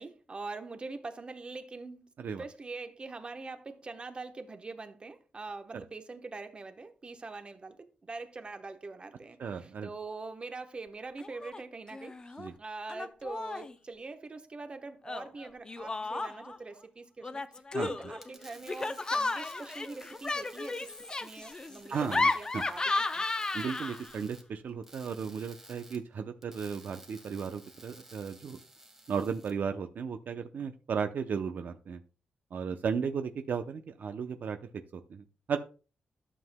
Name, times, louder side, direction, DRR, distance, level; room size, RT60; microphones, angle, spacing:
voice 1, 0.0-2.1 2.4-12.2 12.6-17.4 17.8-20.9 21.2-23.2, right 3 dB, 30° right, 1.0 m, -43 dB
voice 2, 9.4-9.9 12.4-12.5 17.7-18.1 21.9-22.6 23.5-28.6 29.1-32.0 32.5-35.6, right 6 dB, 60° right, 0.6 m, -35 dB
Laughter, 11.2-11.6 11.9-12.5 12.9-13.7 15.0-16.6 17.2-24.2, left 3 dB, 25° left, 0.6 m, -34 dB
sound 1, 18.1-29.5, right 1 dB, 10° right, 1.8 m, -55 dB
12.5 x 7.5 x 2.2 m
cardioid pair, 110°, 3 cm